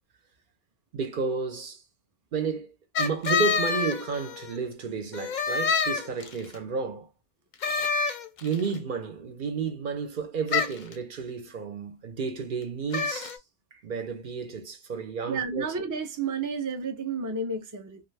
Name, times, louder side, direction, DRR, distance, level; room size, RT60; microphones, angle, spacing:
voice 1, 0.9-1.8 2.3-2.7 3.0-7.1 8.4-13.4 13.7-15.7, right 5 dB, 60° right, 0.8 m, -32 dB
sound 1, 3.0-4.6 5.1-6.5 7.6-8.7 10.5-10.9 12.9-13.4, left 5 dB, 55° left, 0.6 m, -27 dB
voice 2, 15.3-18.0, right 4 dB, 30° right, 0.3 m, -31 dB
2.5 x 2.3 x 3.2 m
omnidirectional pair, 1.1 m